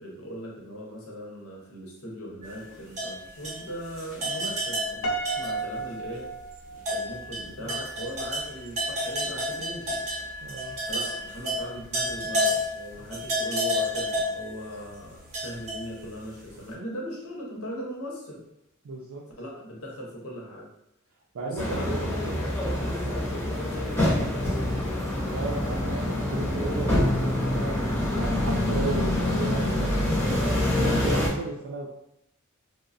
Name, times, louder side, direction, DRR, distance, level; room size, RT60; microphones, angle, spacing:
voice 1, 0.0-6.3 6.9-10.0 10.9-15.2 15.4-18.4 19.4-20.7 21.5-24.7, equal, 85° left, -2 dB, 0.9 m, -39 dB
sound 1, 2.4-5.9 6.2-6.3 6.8-16.4, equal, 35° right, 0.6 m, -31 dB
Piano, 5.0-7.3, right 3 dB, 70° left, 0.4 m, -33 dB
voice 2, 7.4-7.8 10.4-10.8 18.8-19.3 21.3-22.1 25.3-27.7 28.2-30.1 30.4-31.9, right 3 dB, 80° right, -3 dB, 0.4 m, -34 dB
sound 2, 21.6-31.3, left 1 dB, 10° left, 0.7 m, -26 dB
3.1 x 2.0 x 2.5 m, 0.81 s
head